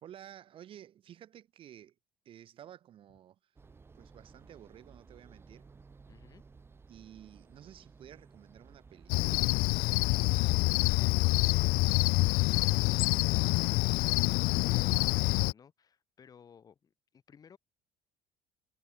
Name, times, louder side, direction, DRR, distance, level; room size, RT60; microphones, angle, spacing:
voice 1, 0.0-2.0 2.3-3.6 3.9-5.7 6.9-9.7, right 11 dB, 40° right, 2.2 m, -53 dB
sound 1, 3.6-10.6, right 4 dB, 15° right, 7.7 m, -57 dB
voice 2, 6.1-6.4 10.5-17.6, left 7 dB, 25° left, 6.8 m, -57 dB
Cricket, 9.1-15.5, left 26 dB, 85° left, 0.6 m, -26 dB
cardioid pair, 165°, 14 cm